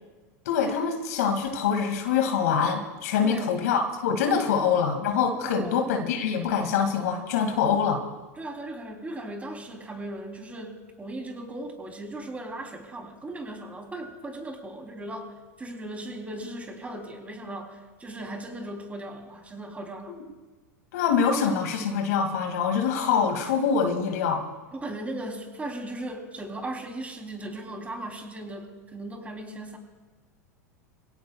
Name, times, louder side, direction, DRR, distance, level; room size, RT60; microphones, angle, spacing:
voice 1, 0.5-8.0 20.9-24.4, left 6 dB, 70° left, 3 dB, 2.3 m, -25 dB
voice 2, 5.4-5.8 8.4-20.2 24.7-29.8, right 1 dB, 15° right, 3 dB, 3.2 m, -37 dB
27.5 x 17.0 x 2.4 m, 1.2 s
hypercardioid pair, 95°, 9 cm